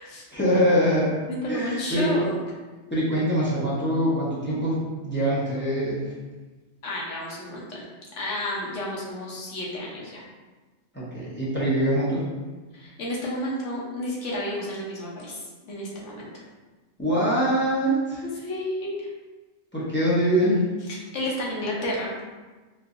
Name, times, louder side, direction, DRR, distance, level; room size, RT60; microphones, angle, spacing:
voice 1, 0.3-1.1 1.5-2.1 2.9-6.0 10.9-12.2 17.0-18.2 19.7-20.6, equal, 10° left, -9 dB, 0.7 m, -23 dB
voice 2, 1.3-2.4 6.8-7.9 8.2-10.2 12.7-16.3 18.2-19.1 20.9-22.1, left 1 dB, 70° left, -4 dB, 1.0 m, -31 dB
3.7 x 2.7 x 2.5 m, 1.3 s
omnidirectional pair, 1.3 m